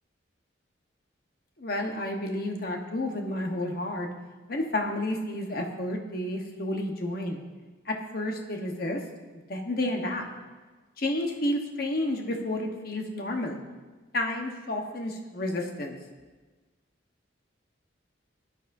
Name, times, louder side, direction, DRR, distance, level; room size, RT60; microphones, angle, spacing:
voice 1, 1.6-4.1 4.5-7.4 7.8-9.0 9.5-10.3 11.0-13.6 14.1-16.0, left 1 dB, 50° left, 2 dB, 1.2 m, -31 dB
18.5 x 12.0 x 2.7 m, 1.3 s
head